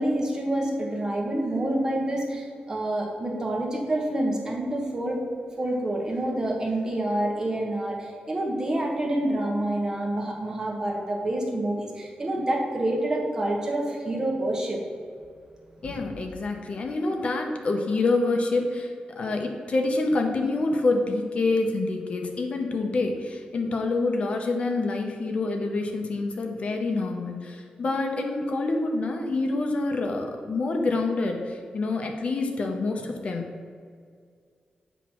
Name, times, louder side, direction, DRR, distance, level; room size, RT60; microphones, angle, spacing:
voice 1, 0.0-5.2 5.6-14.8, right 1 dB, 25° right, -1 dB, 1.1 m, -27 dB
voice 2, 15.8-33.5, left 3 dB, 50° left, 3 dB, 0.7 m, -27 dB
7.9 x 3.1 x 5.8 m, 2.1 s
wide cardioid pair, 155°, 3 cm